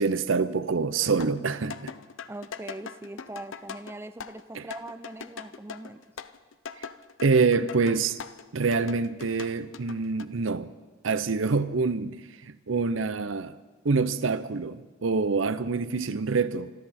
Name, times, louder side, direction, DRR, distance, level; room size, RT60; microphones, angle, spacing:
voice 1, 0.0-1.9 4.5-4.7 7.2-8.2 8.5-10.7 11.0-13.6 13.8-16.7, right 4 dB, 85° right, 0.7 m, -26 dB
sound 1, 1.0-8.4 8.7-10.3, left 6 dB, 85° left, 0.6 m, -41 dB
voice 2, 2.3-6.0, right 2 dB, 10° right, 0.4 m, -41 dB
26.5 x 12.5 x 4.3 m
head